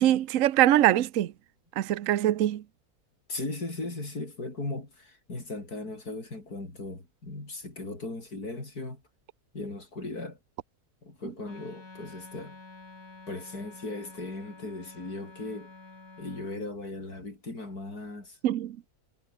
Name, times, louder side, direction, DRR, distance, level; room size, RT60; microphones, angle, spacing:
voice 1, 0.0-1.3 1.8-2.6 18.4-18.8, right 13 dB, 65° right, 1.1 m, -23 dB
voice 2, 3.3-9.0 9.5-10.4 11.0-12.6 13.3-15.7 16.2-18.4, left 2 dB, 80° left, 6.2 m, -37 dB
Wind instrument woodwind instrument, 11.4-16.6, left 3 dB, 65° left, 4.4 m, -49 dB
omnidirectional pair, 1.6 m